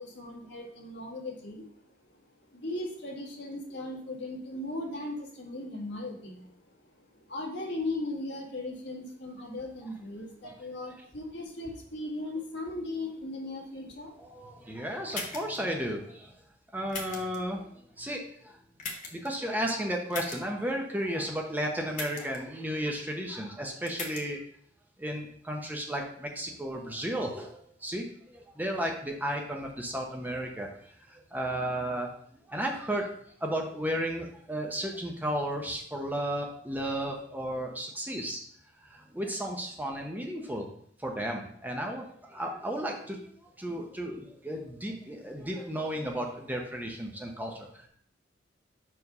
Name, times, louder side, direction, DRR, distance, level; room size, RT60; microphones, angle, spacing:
voice 1, 0.0-2.0 2.5-14.2, left 2 dB, 65° left, -2 dB, 1.8 m, -38 dB
voice 2, 14.2-16.3 16.7-18.6 19.1-24.4 25.0-32.1 32.5-33.1 33.4-38.4 38.8-40.7 41.0-43.3 43.6-47.9, equal, 10° right, 1 dB, 0.7 m, -34 dB
sound 1, 15.1-15.6 16.9-17.4 18.8-19.3 20.1-20.4 21.9-22.4 23.9-24.2, left 4 dB, 40° left, 1.2 m, -38 dB
5.1 x 4.8 x 5.4 m, 0.62 s
head